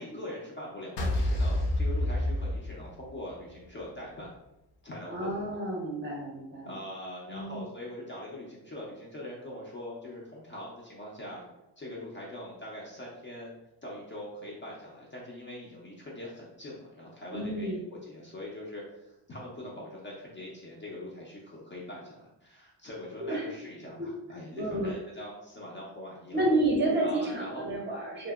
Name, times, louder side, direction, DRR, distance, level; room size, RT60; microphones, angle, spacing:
voice 1, 0.0-4.3 4.8-5.5 6.7-11.5 11.8-13.5 13.8-26.4 27.0-27.6, left 1 dB, 30° left, -4 dB, 0.4 m, -42 dB
sound 1, 1.0-3.3, left 1 dB, 75° left, 0.7 m, -28 dB
voice 2, 5.1-6.7 7.3-7.6 17.3-17.8 23.2-23.5 24.0-24.1 24.5-24.9 26.3-28.3, right 1 dB, 25° right, -2 dB, 0.5 m, -30 dB
2.7 x 2.5 x 2.3 m, 0.91 s
cardioid pair, 160°, 43 cm